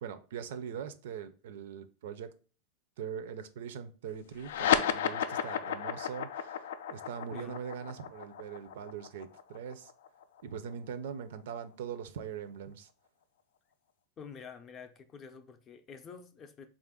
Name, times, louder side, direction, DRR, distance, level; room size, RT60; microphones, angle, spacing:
voice 1, 0.0-2.3 3.0-9.9 10.4-12.9, right 8 dB, 80° right, 0.4 m, -42 dB
sound 1, 4.4-11.2, left 8 dB, 90° left, 0.3 m, -33 dB
voice 2, 14.2-16.7, left 6 dB, 25° left, 0.4 m, -48 dB
4.0 x 2.4 x 3.5 m
supercardioid pair, 155°, 0 cm